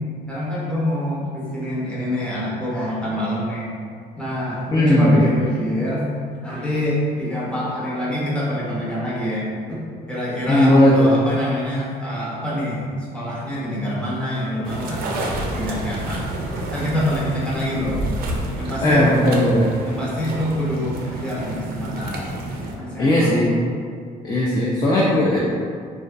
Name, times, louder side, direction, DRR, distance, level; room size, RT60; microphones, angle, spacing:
voice 1, 0.3-3.7 4.2-6.1 6.4-9.8 10.1-12.8 13.1-18.0 18.6-19.1 19.8-22.2 22.8-23.6, left 1 dB, 5° left, -7 dB, 0.7 m, -25 dB
voice 2, 4.7-5.2 10.5-11.1 18.8-19.7 23.0-23.5 24.2-25.4, left 1 dB, 25° left, -5 dB, 0.3 m, -17 dB
sound 1, 14.6-22.7, right 1 dB, 60° right, 0.4 m, -29 dB
2.4 x 2.2 x 2.3 m, 2.1 s
cardioid pair, 110°, 17 cm